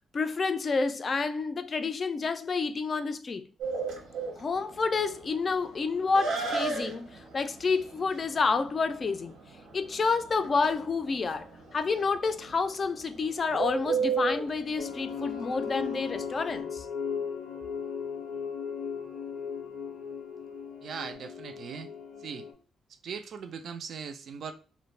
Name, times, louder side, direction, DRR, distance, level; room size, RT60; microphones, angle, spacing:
voice 1, 0.1-3.4 4.4-9.3 9.7-16.9, left 4 dB, 40° left, 0.3 m, -29 dB
Bird, 3.6-16.6, right 4 dB, 90° right, 0.7 m, -34 dB
sound 1, 14.8-22.5, left 6 dB, 90° left, 0.5 m, -37 dB
voice 2, 20.8-21.9 22.2-22.5 23.0-24.5, right 6 dB, 60° right, 0.3 m, -39 dB
2.4 x 2.1 x 3.1 m
cardioid pair, 90°, 0 cm